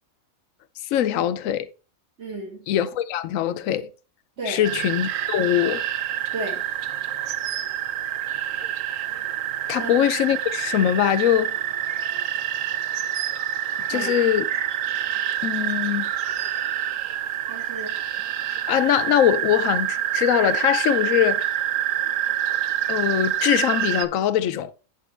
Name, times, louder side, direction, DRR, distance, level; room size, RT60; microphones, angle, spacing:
voice 1, 0.9-1.7 2.7-3.9 4.5-5.8 9.7-11.5 13.9-14.4 15.4-16.1 18.7-21.5 22.9-24.7, left 11 dB, 75° left, 1.0 m, -22 dB
voice 2, 2.2-2.7 4.4-4.7 6.3-6.6 9.8-10.0 13.9-14.1 17.5-18.0, right 1 dB, 50° right, 2.5 m, -33 dB
sound 1, 4.6-24.1, right 11 dB, 70° right, 1.0 m, -27 dB
9.2 x 6.7 x 3.2 m
omnidirectional pair, 1.5 m